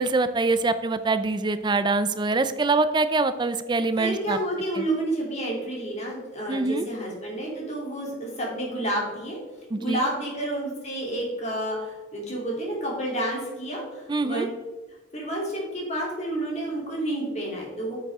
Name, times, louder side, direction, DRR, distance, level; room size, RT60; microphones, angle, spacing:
voice 1, 0.0-4.4 4.8-4.9 6.5-6.9 9.7-10.1 14.1-14.5, right 3 dB, 20° right, 12 dB, 0.4 m, -24 dB
voice 2, 4.0-9.4 9.8-14.5 15.1-18.0, right 1 dB, 35° left, -3 dB, 3.2 m, -30 dB
9.0 x 8.0 x 3.6 m, 1.2 s
head